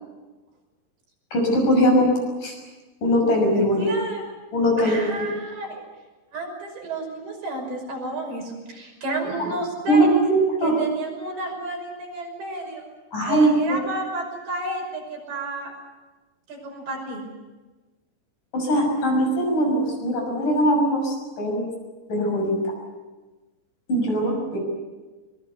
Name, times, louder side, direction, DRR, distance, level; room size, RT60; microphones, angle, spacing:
voice 1, 1.3-2.1 2.4-2.6 3.0-3.9 4.5-5.3 9.4-9.5 9.9-10.8 13.1-13.8 18.5-21.7 22.1-22.6 23.9-24.6, equal, 50° left, 1 dB, 7.8 m, -21 dB
voice 2, 3.8-4.2 4.8-5.8 6.3-10.2 10.6-12.8 13.3-15.8 16.5-17.3, right 2 dB, 70° right, 1 dB, 7.8 m, -31 dB
23.0 x 22.0 x 8.1 m, 1.2 s
omnidirectional pair, 4.7 m